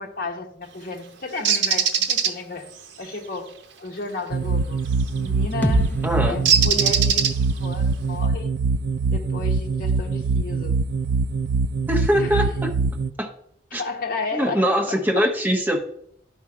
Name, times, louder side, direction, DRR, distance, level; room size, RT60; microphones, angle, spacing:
voice 1, 0.0-2.7 3.0-4.8 5.2-7.3 7.6-8.6 9.1-10.8 12.1-12.4 13.7-15.3, left 3 dB, 50° left, 1.0 m, -33 dB
Bird, 1.5-2.3 4.9-5.2 6.5-7.7, right 7 dB, 85° right, 0.8 m, -20 dB
sound 1, 4.3-13.1, right 4 dB, 65° right, 0.3 m, -24 dB
sound 2, 5.6-9.5, equal, 10° left, 0.5 m, -31 dB
voice 2, 6.0-6.4 11.9-12.7 13.2-13.3 13.7-13.8 14.3-15.8, equal, 10° right, 1.0 m, -22 dB
11.0 x 4.3 x 4.9 m
head